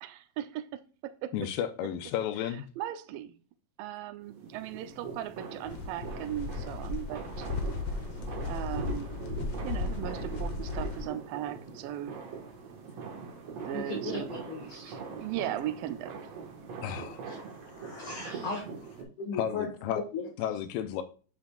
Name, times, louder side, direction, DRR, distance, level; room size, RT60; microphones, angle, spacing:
voice 1, 0.0-1.3 2.8-3.4 3.8-7.5 8.4-9.1 9.6-12.2 13.7-14.3 14.7-16.5, right 12 dB, 80° right, 2.3 m, -38 dB
voice 2, 1.3-2.6 16.8-17.2 19.3-20.0 20.4-21.0, left 10 dB, 90° left, 2.4 m, -32 dB
sound 1, 4.3-19.0, right 5 dB, 55° right, 2.3 m, -42 dB
sound 2, 5.6-11.1, left 4 dB, 70° left, 1.4 m, -35 dB
voice 3, 13.7-14.9 17.2-18.6 19.2-19.7 20.1-20.2, left 4 dB, 50° left, 2.0 m, -37 dB
8.4 x 6.1 x 2.4 m
omnidirectional pair, 4.0 m